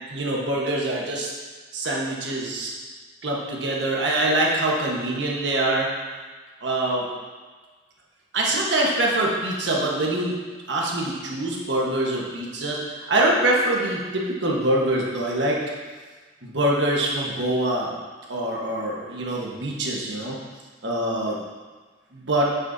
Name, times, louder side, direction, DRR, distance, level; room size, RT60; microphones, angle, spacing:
voice 1, 0.1-1.3 1.7-2.7 3.2-5.9 6.6-7.1 8.3-10.3 10.7-15.6 16.4-17.9 18.3-20.4 20.8-21.4 22.1-22.5, right 1 dB, 70° right, -3 dB, 1.3 m, -24 dB
9.5 x 6.5 x 2.7 m, 1.4 s
head